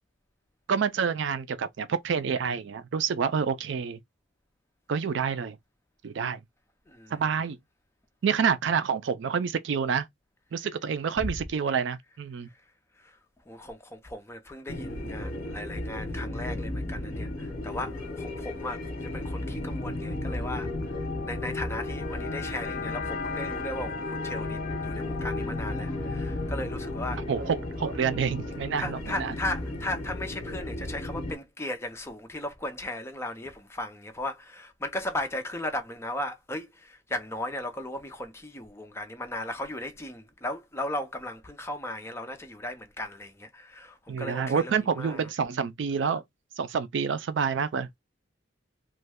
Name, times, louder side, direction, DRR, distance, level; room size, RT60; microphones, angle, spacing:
voice 1, 0.7-4.0 4.9-5.6 6.0-6.4 7.1-7.6 8.2-10.1 10.5-12.5 27.3-29.3 44.1-46.2 46.6-47.9, right 6 dB, 65° right, 0.4 m, -28 dB
voice 2, 6.9-7.3 11.2-11.4 13.0-13.2 13.5-20.7 21.3-27.2 28.8-45.3, left 1 dB, 15° left, 0.6 m, -36 dB
sound 1, 14.7-31.3, left 2 dB, 45° left, 1.1 m, -34 dB
3.1 x 2.2 x 3.4 m
head